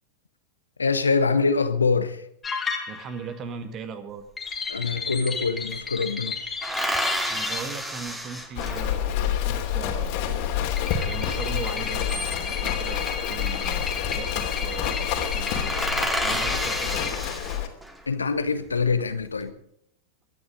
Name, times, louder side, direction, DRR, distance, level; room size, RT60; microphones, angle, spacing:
voice 1, 0.8-2.2 4.7-6.4 15.9-16.0 18.1-19.5, left 4 dB, 75° left, 10 dB, 1.4 m, -24 dB
sound 1, 2.4-3.3 4.4-7.7 10.8-17.1, left 5 dB, 15° left, 2.5 m, -33 dB
voice 2, 2.9-4.2 7.3-15.8 16.2-17.1, right 6 dB, 30° right, 9 dB, 2.0 m, -39 dB
sound 2, 4.5-4.6 4.8-5.9 6.6-9.1 11.8-12.8 13.9-14.3 14.6-14.8 15.1-15.2 15.5-18.0 18.6-19.2, right 1 dB, 5° right, 2.4 m, -31 dB
Livestock farm animals working animals, 8.6-17.7, left 9 dB, 45° left, 2.9 m, -28 dB
23.5 x 10.0 x 5.1 m, 0.71 s
figure-of-eight pair, 90°, 0 cm